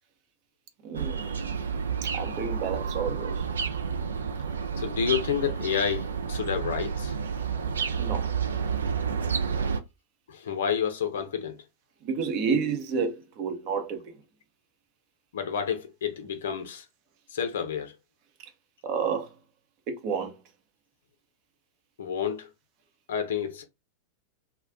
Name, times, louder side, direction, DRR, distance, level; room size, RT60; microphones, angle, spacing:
voice 1, 0.8-1.5 2.1-3.4 8.0-8.3 12.0-14.2 18.4-18.5 18.8-19.3 19.9-20.4, right 6 dB, 40° right, 0.7 m, -30 dB
sound 1, 0.9-9.8, right 6 dB, 70° right, 0.4 m, -30 dB
voice 2, 4.8-7.1 10.3-11.6 15.3-16.8 17.3-17.9 22.0-22.5 23.1-23.6, left 7 dB, 60° left, 0.7 m, -29 dB
2.4 x 2.2 x 3.6 m
figure-of-eight pair, 90°, 0 cm